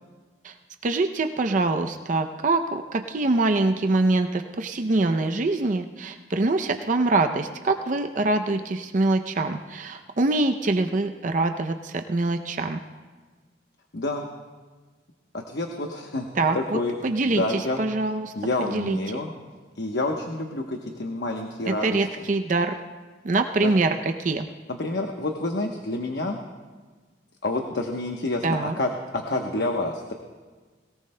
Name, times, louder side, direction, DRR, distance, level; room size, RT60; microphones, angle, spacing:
voice 1, 0.8-12.8 16.3-18.3 18.6-19.0 21.6-22.8 23.2-24.5 28.4-28.8, right 2 dB, 45° right, 6 dB, 0.5 m, -24 dB
voice 2, 13.9-14.3 15.3-16.3 16.5-17.8 18.4-19.3 19.8-22.0 23.6-23.7 24.7-26.4 27.4-30.1, left 2 dB, 70° left, 2 dB, 1.0 m, -28 dB
21.5 x 17.5 x 2.2 m, 1.4 s
head